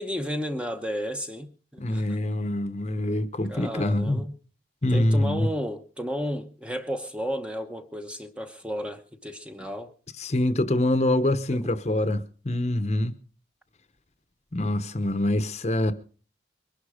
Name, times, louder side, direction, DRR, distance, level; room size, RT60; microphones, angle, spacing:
voice 1, 0.0-2.0 3.5-4.4 4.9-9.9, equal, 5° right, 1.0 m, -33 dB
voice 2, 1.8-4.2 4.8-5.5 10.2-13.1 14.5-15.9, left 1 dB, 35° left, 0.9 m, -25 dB
22.0 x 11.5 x 5.0 m
head